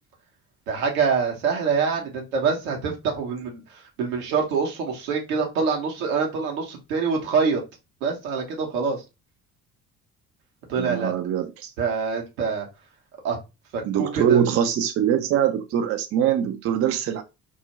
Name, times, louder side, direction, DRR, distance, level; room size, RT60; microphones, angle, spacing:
voice 1, 0.7-7.6 8.0-9.0 10.7-11.1 11.8-12.7 13.2-13.4 13.7-14.4, right 5 dB, 70° right, 0.8 m, -25 dB
voice 2, 10.8-11.7 13.8-17.2, right 9 dB, 35° right, 0.4 m, -23 dB
2.4 x 2.1 x 2.8 m
figure-of-eight pair, 50°, 43 cm